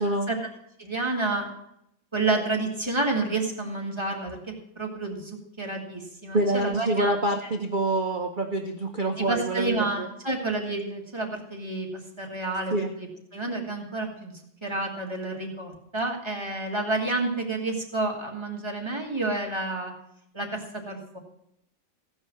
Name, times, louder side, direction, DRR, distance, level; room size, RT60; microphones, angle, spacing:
voice 1, 0.8-1.5 2.1-4.4 4.7-7.1 9.2-13.1 13.3-14.3 14.6-19.9 20.3-21.2, right 2 dB, 15° right, 0 dB, 1.7 m, -29 dB
voice 2, 6.3-10.1 12.7-12.9, right 2 dB, 80° right, 5 dB, 0.4 m, -26 dB
16.0 x 5.5 x 7.4 m, 0.76 s
omnidirectional pair, 2.1 m